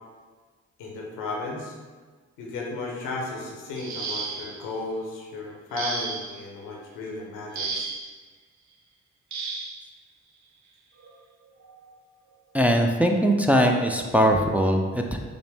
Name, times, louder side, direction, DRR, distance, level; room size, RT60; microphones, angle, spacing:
voice 1, 0.8-1.7 2.4-7.9, left 3 dB, 90° left, -1 dB, 0.7 m, -34 dB
sound 1, 3.8-4.7 5.8-6.4 7.5-8.1 9.3-9.8 11.0-11.1 11.6-11.8, right 4 dB, 65° right, 0.6 m, -33 dB
voice 2, 12.5-15.2, equal, 5° right, 1 dB, 0.4 m, -21 dB
5.0 x 2.1 x 3.4 m, 1.4 s
supercardioid pair, 40°, 31 cm